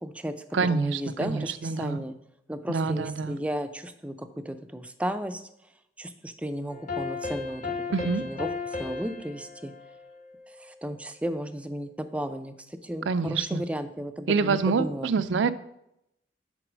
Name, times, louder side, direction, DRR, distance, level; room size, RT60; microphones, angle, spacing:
voice 1, 0.0-0.3 0.6-2.2 2.5-5.4 6.0-7.7 8.2-9.7 10.5-15.1, equal, 5° right, 9 dB, 0.4 m, -34 dB
voice 2, 0.5-2.0 2.7-3.4 7.9-8.2 13.1-13.6 14.3-15.5, right 5 dB, 85° right, 12 dB, 0.4 m, -26 dB
sound 1, 6.7-10.9, left 4 dB, 40° left, 1.1 m, -35 dB
7.9 x 4.0 x 6.1 m, 0.81 s
head